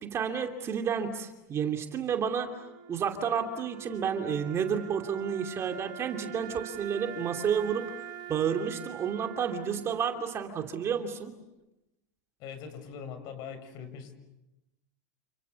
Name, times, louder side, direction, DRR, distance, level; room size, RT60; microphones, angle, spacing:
voice 1, 0.0-2.5 2.9-7.9 8.3-11.3, right 7 dB, 30° right, 5 dB, 2.8 m, -31 dB
Wind instrument woodwind instrument, 2.2-11.3, right 10 dB, 45° right, 3.4 m, -44 dB
voice 2, 12.4-14.1, left 7 dB, 45° left, 8 dB, 7.1 m, -42 dB
29.5 x 29.0 x 7.0 m, 0.96 s
supercardioid pair, 135°, 9 cm